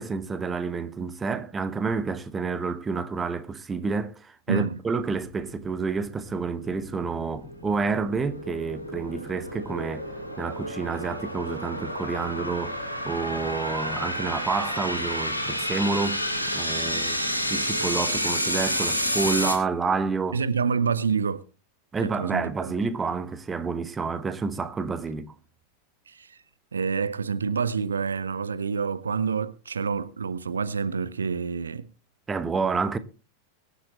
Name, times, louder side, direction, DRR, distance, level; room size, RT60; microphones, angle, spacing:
voice 1, 0.0-10.1 10.4-16.2 16.5-17.2 17.5-20.4 21.9-25.3 32.3-33.0, right 4 dB, 15° right, 1.0 m, -29 dB
voice 2, 4.5-4.8 20.3-21.4 22.0-22.5 26.1-26.4 26.7-31.9, right 5 dB, 70° right, 0.8 m, -27 dB
sound 1, 5.1-19.6, equal, 85° left, 3.3 m, -30 dB
23.5 x 8.1 x 3.0 m
figure-of-eight pair, 90°, 0 cm